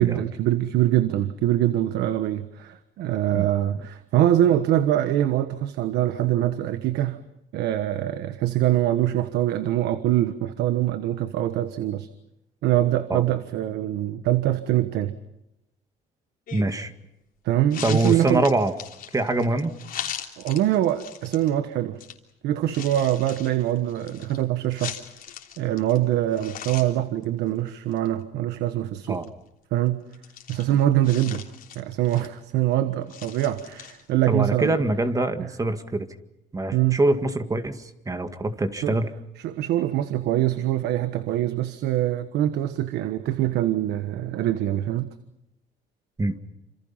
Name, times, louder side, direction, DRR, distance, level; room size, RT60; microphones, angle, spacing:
voice 1, 0.0-7.2 7.5-12.1 12.6-15.1 17.4-18.4 20.4-22.0 22.4-24.9 25.6-29.2 29.7-30.0 30.5-31.4 31.7-34.8 36.7-37.0 38.8-39.0 39.4-45.1, right 13 dB, 80° right, 11 dB, 1.3 m, -24 dB
sound 1, 16.5-16.8 17.7-21.5 22.0-22.1 22.6-26.0 26.3-27.0 27.2-27.3 27.7-28.1 29.0-29.3 30.1-32.5 33.1-34.2, left 9 dB, 60° left, 3.3 m, -39 dB
voice 2, 16.5-16.9 17.8-18.7 19.1-19.7 29.1-29.3 31.3-31.4 34.3-36.1 36.5-39.1 46.2-46.3, right 2 dB, 20° right, 8 dB, 2.0 m, -24 dB
28.0 x 27.0 x 5.7 m, 0.89 s
cardioid pair, 110°, 17 cm